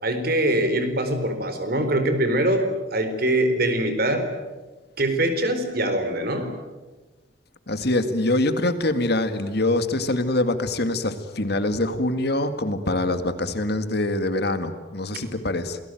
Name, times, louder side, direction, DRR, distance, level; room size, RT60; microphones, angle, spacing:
voice 1, 0.0-4.3 5.0-6.5, right 1 dB, 50° right, 8 dB, 4.4 m, -23 dB
voice 2, 7.7-15.8, left 2 dB, 55° left, 9 dB, 2.1 m, -24 dB
28.0 x 19.5 x 9.3 m, 1.2 s
head